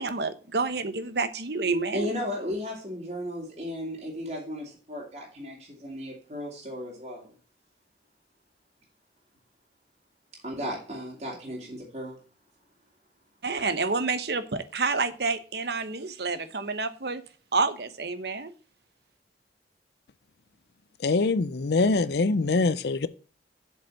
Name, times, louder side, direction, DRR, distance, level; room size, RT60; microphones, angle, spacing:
voice 1, 0.0-2.1 13.4-17.2 17.5-18.5, right 4 dB, 65° right, 0.9 m, -28 dB
voice 2, 1.9-7.3 10.3-12.2, left 1 dB, 35° right, 2.4 m, -35 dB
voice 3, 21.0-23.1, left 3 dB, 70° left, 0.5 m, -24 dB
7.6 x 5.3 x 7.4 m
head